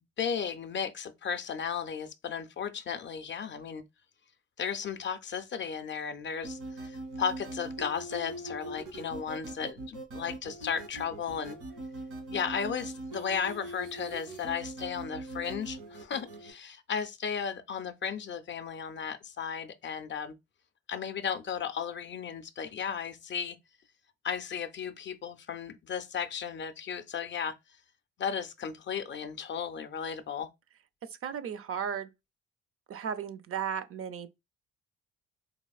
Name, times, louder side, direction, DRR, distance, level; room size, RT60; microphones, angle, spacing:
voice 1, 0.2-3.8 4.6-11.6 12.3-20.3 20.9-23.6 24.2-27.5 28.2-30.5, left 7 dB, 40° left, 0.4 m, -35 dB
sound 1, 6.4-16.5, right 1 dB, 90° right, 1.8 m, -41 dB
voice 2, 31.2-32.1 32.9-34.3, right 7 dB, 50° right, 0.5 m, -35 dB
4.2 x 2.9 x 2.3 m
cardioid pair, 90°, 30 cm